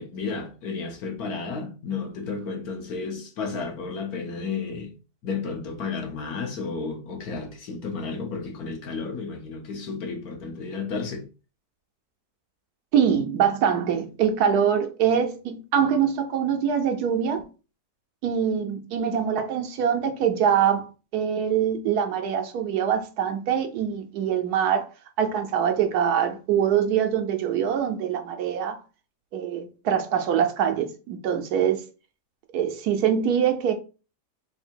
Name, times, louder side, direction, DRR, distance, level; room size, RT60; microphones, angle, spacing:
voice 1, 0.0-4.9 5.2-11.3, left 4 dB, 65° left, 1.3 m, -32 dB
voice 2, 12.9-17.4 18.2-20.9 21.1-24.9 25.2-28.8 29.3-31.8 32.5-33.7, right 8 dB, 75° right, 1.0 m, -24 dB
3.5 x 2.7 x 4.4 m
omnidirectional pair, 1.8 m